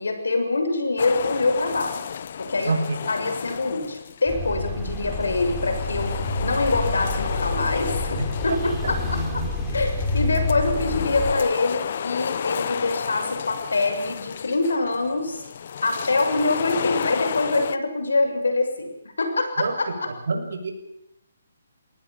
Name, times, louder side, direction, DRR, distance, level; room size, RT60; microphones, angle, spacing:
voice 1, 0.0-2.0 2.4-2.8 3.1-6.1 6.4-8.2 8.4-9.4 9.7-15.4 15.8-18.9 19.2-20.1, left 3 dB, 90° left, 6 dB, 6.8 m, -24 dB
sound 1, 1.0-4.3 4.6-17.8, left 8 dB, 50° left, 1.0 m, -32 dB
voice 2, 2.6-3.1 8.2-8.6 8.8-8.9 19.6-19.7 20.3-20.7, right 3 dB, 70° right, 5 dB, 6.4 m, -27 dB
sound 2, 4.3-11.3, left 2 dB, 10° left, 4.6 m, -28 dB
22.5 x 18.5 x 9.0 m, 0.77 s
hypercardioid pair, 160°, 0 cm